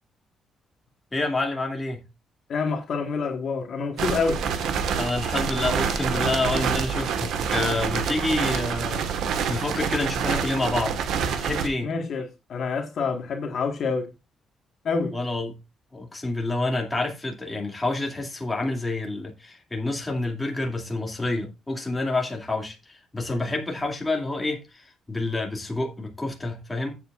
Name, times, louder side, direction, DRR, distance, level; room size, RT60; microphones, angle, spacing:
voice 1, 1.1-2.0 5.0-11.0 11.4-11.9 15.1-15.6 15.9-27.0, left 2 dB, 10° left, 2.4 m, -28 dB
voice 2, 2.5-4.4 11.8-12.2 12.5-14.1 14.8-15.2, left 4 dB, 55° left, 1.6 m, -27 dB
sound 1, 4.0-11.7, right 7 dB, 85° right, 1.5 m, -27 dB
14.5 x 8.0 x 2.5 m
cardioid pair, 140°, 0 cm